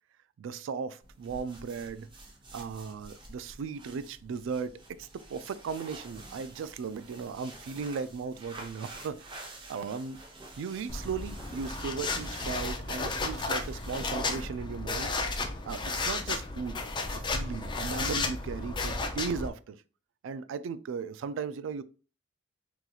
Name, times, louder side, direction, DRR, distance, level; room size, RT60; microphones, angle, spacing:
voice 1, 0.4-2.1 2.5-10.2 10.6-15.1 15.6-19.8 20.2-21.8, right 5 dB, 75° right, 0.3 m, -37 dB
sound 1, 1.0-14.6, right 2 dB, 25° right, 0.7 m, -49 dB
sound 2, 10.9-19.5, left 3 dB, 25° left, 0.4 m, -33 dB
3.9 x 2.9 x 2.3 m
head